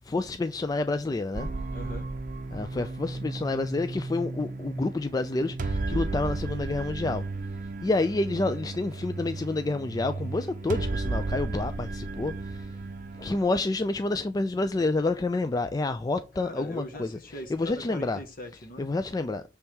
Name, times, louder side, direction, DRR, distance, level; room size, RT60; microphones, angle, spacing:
voice 1, 0.1-1.5 2.5-7.2 7.8-12.7 13.2-18.2 18.8-19.4, left 2 dB, 20° left, 0.3 m, -29 dB
sound 1, 1.3-13.4, right 3 dB, 45° right, 0.6 m, -34 dB
voice 2, 1.7-2.1 16.4-18.9, left 1 dB, 50° left, 1.2 m, -41 dB
7.0 x 3.4 x 4.4 m
head